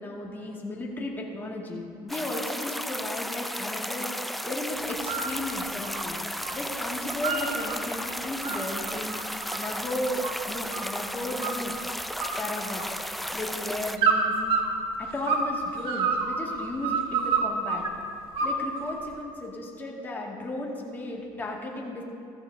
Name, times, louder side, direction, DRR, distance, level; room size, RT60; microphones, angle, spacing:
voice 1, 0.0-6.2 6.5-9.2 9.6-11.8 12.4-12.8 13.3-14.4 15.0-17.8 18.4-22.0, left 1 dB, 20° left, -3 dB, 2.0 m, -35 dB
sound 1, 2.1-14.0, equal, ahead, 0.4 m, -34 dB
sound 2, 4.9-5.3 5.6-6.6 6.9-7.8 8.2-11.0 11.4-11.9 12.2-13.2 14.0-15.5 15.8-17.9 18.3-19.1, right 5 dB, 55° right, 1.5 m, -28 dB
14.5 x 14.0 x 2.7 m, 2.4 s
cardioid pair, 115°, 11 cm